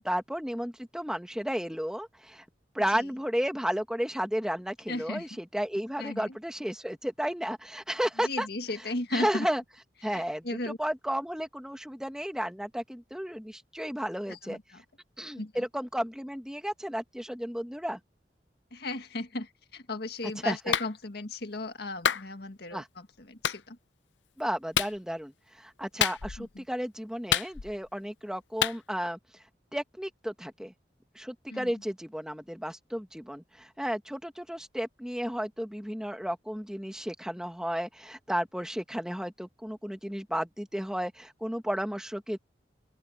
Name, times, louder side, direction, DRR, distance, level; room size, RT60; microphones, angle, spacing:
voice 1, 0.0-2.4 2.7-8.5 9.1-9.6 10.0-14.6 15.2-18.0 20.5-20.6 22.7-22.9 24.4-29.2 29.7-30.7 31.2-42.4, equal, 5° right, 1.7 m, -33 dB
voice 2, 4.9-5.3 6.0-6.4 8.2-9.5 10.0-10.8 14.3-14.8 15.4-15.6 18.7-23.8 26.4-26.6 31.5-31.7, left 2 dB, 60° left, 1.9 m, -36 dB
Clapping, 20.7-20.9 22.1-22.3 23.4-23.6 24.7-25.0 26.0-26.5 27.3-27.9 28.6-28.8, left 9 dB, 85° left, 0.6 m, -27 dB
open air
head